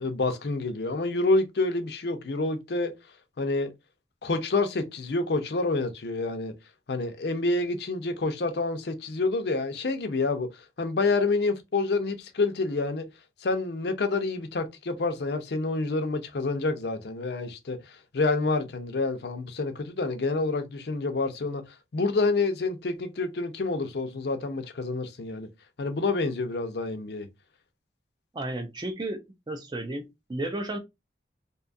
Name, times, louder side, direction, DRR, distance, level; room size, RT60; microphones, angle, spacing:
voice 1, 0.0-2.9 3.4-3.7 4.2-6.5 6.9-13.1 13.4-25.5 25.8-27.3, left 3 dB, 65° left, 0.5 m, -28 dB
voice 2, 28.3-29.2 29.5-30.8, right 1 dB, 25° right, 0.4 m, -33 dB
2.7 x 2.3 x 2.5 m
head